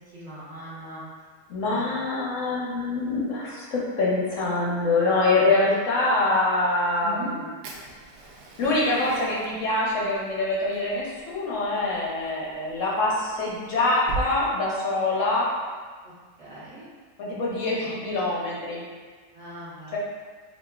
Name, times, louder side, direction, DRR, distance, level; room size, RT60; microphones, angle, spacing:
voice 1, 0.1-1.0 1.7-2.0 5.3-5.5 7.0-7.3 9.1-9.2 16.4-16.9 17.8-17.9 19.3-20.0, right 1 dB, 45° right, -12 dB, 1.3 m, -39 dB
voice 2, 1.5-7.5 8.6-15.5 17.2-18.8 19.9-20.0, left 2 dB, 60° left, -5 dB, 0.9 m, -25 dB
Fire, 7.6-14.3, right 4 dB, 85° right, 1.2 m, -41 dB
5.1 x 2.7 x 2.3 m, 1.5 s
omnidirectional pair, 1.8 m